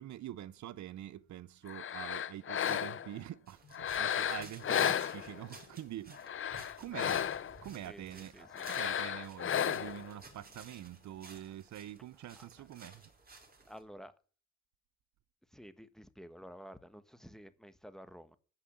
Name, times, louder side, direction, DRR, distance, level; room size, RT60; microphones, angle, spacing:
voice 1, 0.0-13.0, right 12 dB, 70° right, 0.8 m, -46 dB
sound 1, 1.7-3.2 3.7-5.6 6.1-7.6 8.5-10.1, left 9 dB, 45° left, 0.7 m, -34 dB
sound 2, 3.5-13.8, right 3 dB, 30° right, 4.3 m, -56 dB
voice 2, 6.8-7.1 7.8-8.9 12.3-12.7 12.9-13.0 13.6-14.1 15.5-18.4, equal, ahead, 1.4 m, -52 dB
15.0 x 5.6 x 8.4 m
cardioid pair, 90°, 30 cm